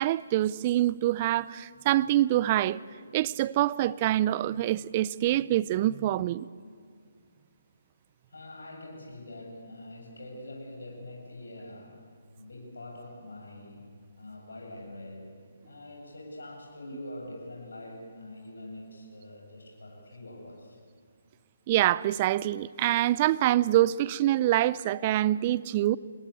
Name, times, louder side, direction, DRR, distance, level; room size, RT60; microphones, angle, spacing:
voice 1, 0.0-2.8 3.1-6.5 21.7-26.0, right 14 dB, 30° right, 0.6 m, -25 dB
voice 2, 8.3-12.0 12.4-13.9 14.2-15.4 15.6-20.8, left 1 dB, 75° left, 7.9 m, -44 dB
26.0 x 19.0 x 8.8 m
figure-of-eight pair, 140°, 0 cm